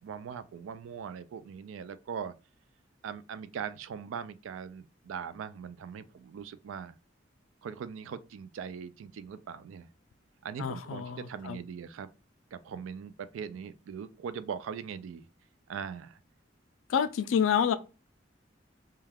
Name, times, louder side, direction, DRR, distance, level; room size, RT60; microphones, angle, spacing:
voice 1, 0.0-2.3 3.0-7.0 7.6-9.9 10.4-12.1 12.5-15.3 15.7-16.2, right 7 dB, 85° right, 0.3 m, -40 dB
voice 2, 10.6-11.6 16.9-17.8, left 8 dB, 90° left, 0.3 m, -28 dB
2.3 x 2.2 x 3.2 m
head